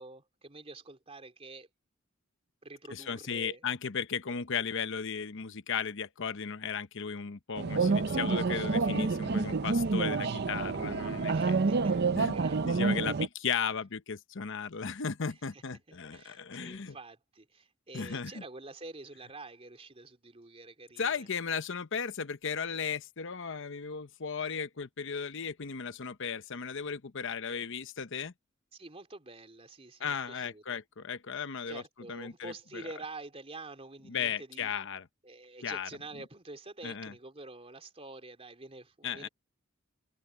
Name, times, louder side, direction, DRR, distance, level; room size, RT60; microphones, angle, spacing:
voice 1, 0.0-1.7 2.6-3.6 11.3-11.9 12.3-12.9 15.3-15.6 15.9-21.3 28.7-30.8 31.7-34.7 35.2-39.3, right 2 dB, 30° right, 3.4 m, -48 dB
voice 2, 2.9-11.6 12.2-12.4 12.6-17.0 17.9-18.4 21.0-28.3 30.0-31.8 32.1-32.9 34.1-35.1 35.6-35.9 36.8-37.1 39.0-39.3, left 6 dB, 65° left, 0.9 m, -35 dB
sound 1, 7.6-13.3, right 4 dB, 50° right, 0.6 m, -28 dB
head